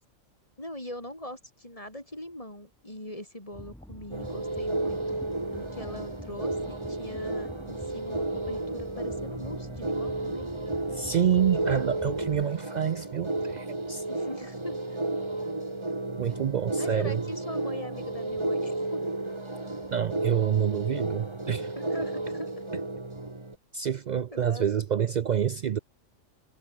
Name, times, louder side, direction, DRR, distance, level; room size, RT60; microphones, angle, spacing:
voice 1, 0.6-5.2 5.5-10.5 14.1-15.0 16.8-19.0 21.8-22.5 24.1-24.6, left 1 dB, 25° left, 5.5 m, -41 dB
sound 1, 3.5-12.5, equal, ahead, 4.1 m, -46 dB
sound 2, 4.1-23.5, right 2 dB, 20° right, 2.1 m, -33 dB
voice 2, 10.9-14.0 16.2-17.2 19.9-21.7 23.7-25.8, right 8 dB, 75° right, 0.4 m, -27 dB
omnidirectional pair, 1.4 m